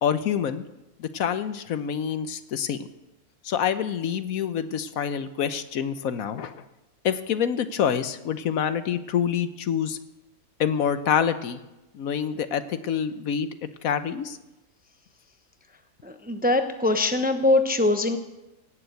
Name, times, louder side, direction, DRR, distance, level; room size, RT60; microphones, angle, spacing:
voice 1, 0.0-0.6 1.0-2.8 3.4-6.6 7.0-10.0 10.6-11.6 11.9-13.5 13.8-14.4, left 8 dB, 75° left, 12 dB, 1.2 m, -26 dB
voice 2, 16.0-18.2, left 2 dB, 10° right, 7 dB, 0.6 m, -22 dB
17.5 x 7.4 x 8.2 m, 1.0 s
omnidirectional pair, 1.5 m